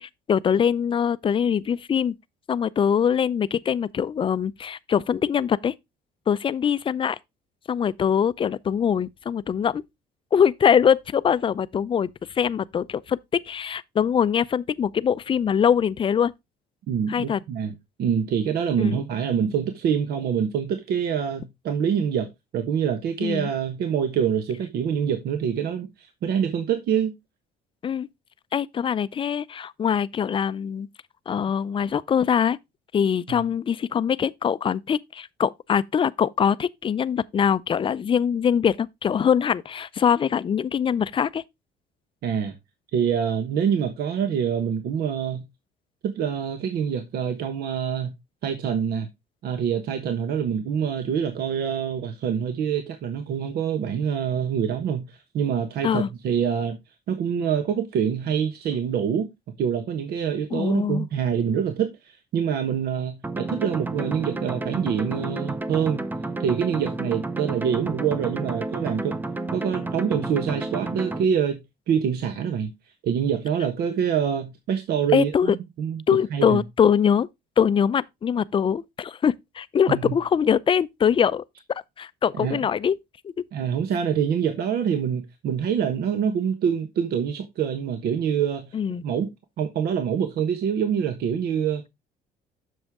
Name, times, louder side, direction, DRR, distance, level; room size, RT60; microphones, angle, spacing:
voice 1, 0.0-2.1 2.5-5.7 6.3-7.2 7.7-9.8 10.3-12.1 12.3-13.2 13.5-16.3 17.1-17.4 18.8-19.0 23.2-23.5 27.8-28.1 28.5-30.9 31.3-32.6 32.9-41.4 55.8-56.1 60.5-61.1 75.1-75.6 76.1-77.3 77.6-81.4 81.7-83.0 83.2-83.3 88.7-89.0, left 8 dB, 30° left, 0.5 m, -23 dB
voice 2, 16.9-27.1 33.3-33.4 42.2-42.5 42.9-45.4 46.0-48.1 48.4-49.1 49.4-56.8 57.1-59.3 59.6-66.1 66.4-69.2 69.5-71.6 71.9-72.7 73.0-75.5 75.8-76.0 76.3-76.6 79.9-80.1 82.4-82.6 83.5-88.8 89.0-89.3 89.6-91.8, right 8 dB, 70° right, 1.2 m, -25 dB
sound 1, 63.2-71.2, right 2 dB, 10° right, 0.7 m, -31 dB
7.9 x 6.4 x 3.6 m
cardioid pair, 110°, 17 cm